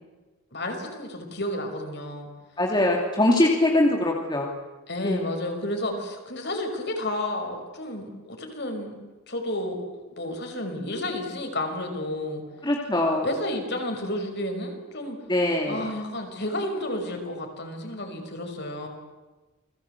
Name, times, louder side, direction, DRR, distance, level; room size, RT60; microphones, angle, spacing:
voice 1, 0.5-2.3 4.9-8.9 9.3-12.4 13.2-15.2 15.7-18.9, left 1 dB, 50° left, 4 dB, 5.7 m, -31 dB
voice 2, 2.6-4.5 5.0-5.2 12.6-13.2 15.3-15.9, left 1 dB, 20° left, 0 dB, 2.7 m, -22 dB
29.5 x 21.0 x 8.3 m, 1.2 s
head